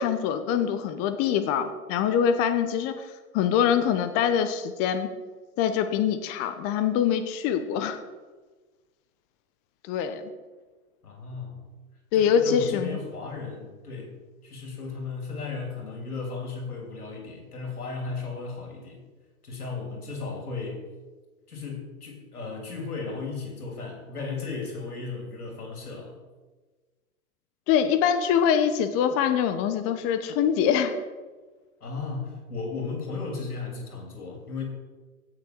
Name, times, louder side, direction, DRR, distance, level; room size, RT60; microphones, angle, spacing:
voice 1, 0.0-5.1 5.6-8.0 9.9-10.2 12.1-13.0 27.7-30.9, left 8 dB, 30° left, 9 dB, 0.9 m, -24 dB
voice 2, 11.0-11.6 12.1-14.1 14.4-19.0 19.4-20.8 21.5-26.1 31.8-34.6, left 4 dB, 85° left, 1 dB, 3.3 m, -35 dB
16.5 x 6.5 x 4.6 m, 1.3 s
hypercardioid pair, 115°, 44 cm